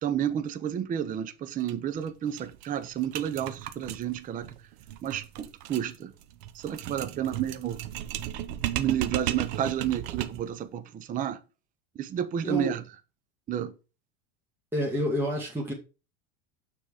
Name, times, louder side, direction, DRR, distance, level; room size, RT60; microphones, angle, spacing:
voice 1, 0.0-4.5 5.0-6.1 6.5-7.8 8.7-11.4 12.0-12.8 13.5-13.7, right 10 dB, 20° right, 0.5 m, -31 dB
sound 1, 1.6-1.7 2.0-2.1 2.4-10.5, right 13 dB, 60° right, 0.8 m, -35 dB
voice 2, 12.4-12.8 14.7-15.7, equal, 5° right, 1.4 m, -28 dB
6.4 x 3.6 x 4.8 m
supercardioid pair, 125°, 37 cm